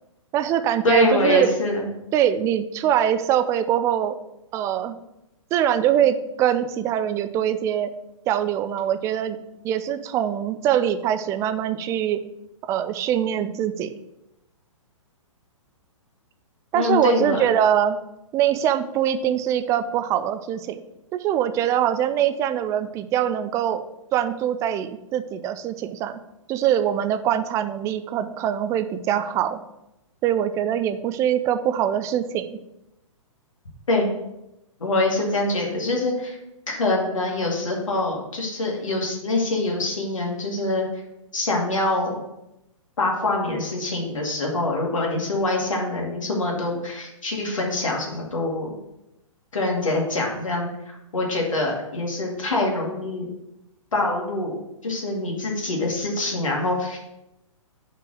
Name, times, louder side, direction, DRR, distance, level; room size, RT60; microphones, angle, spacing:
voice 1, 0.3-1.6 2.1-4.2 4.5-5.0 5.5-7.9 8.3-9.4 9.6-12.2 12.7-13.9 16.7-18.0 18.3-20.8 21.1-23.8 24.1-26.2 26.5-29.6 30.2-32.6, right 10 dB, 15° right, 10 dB, 0.4 m, -23 dB
voice 2, 0.8-1.8 16.7-17.4 33.9-34.1 34.8-36.4 36.7-40.8 41.3-42.2 43.0-48.8 49.5-53.3 53.9-54.6 54.8-57.0, left 2 dB, 70° left, -1 dB, 2.2 m, -24 dB
5.6 x 4.5 x 6.2 m, 0.89 s
figure-of-eight pair, 120°, 17 cm